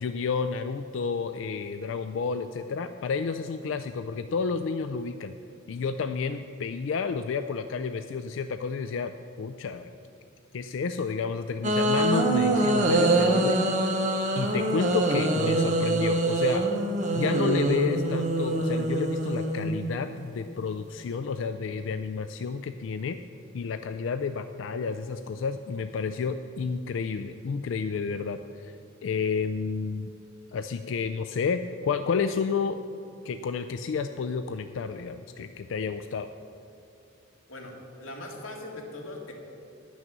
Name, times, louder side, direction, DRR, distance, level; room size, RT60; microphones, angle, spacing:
voice 1, 0.0-5.3 5.7-9.1 9.4-9.9 10.5-13.6 14.3-16.7 17.1-23.2 23.5-28.8 29.0-30.1 30.5-32.8 33.2-36.3, left 5 dB, 70° left, 9 dB, 0.4 m, -30 dB
sound 1, 11.6-20.1, right 2 dB, 40° right, 1.0 m, -25 dB
voice 2, 37.5-39.3, left 2 dB, 90° left, 0 dB, 1.9 m, -40 dB
11.0 x 6.3 x 7.3 m, 2.6 s
head